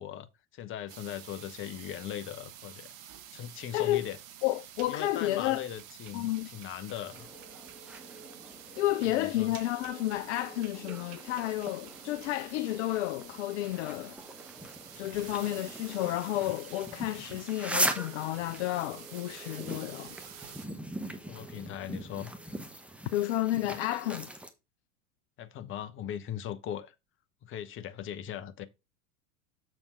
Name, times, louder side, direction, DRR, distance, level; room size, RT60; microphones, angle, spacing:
voice 1, 0.0-2.9 3.3-4.2 4.9-7.3 9.1-9.6 21.3-22.3 25.4-26.9 27.4-28.7, left 10 dB, 30° left, 0.8 m, -39 dB
sound 1, 0.9-20.7, right 10 dB, 60° right, 1.1 m, -49 dB
voice 2, 3.7-4.1 4.4-5.6 6.1-6.5 8.8-14.2 15.0-20.4 23.1-24.3, left 15 dB, 50° left, 0.5 m, -31 dB
sound 2, 7.0-24.5, right 1 dB, 5° right, 0.9 m, -40 dB
7.1 x 4.4 x 5.4 m
figure-of-eight pair, 85°, 44 cm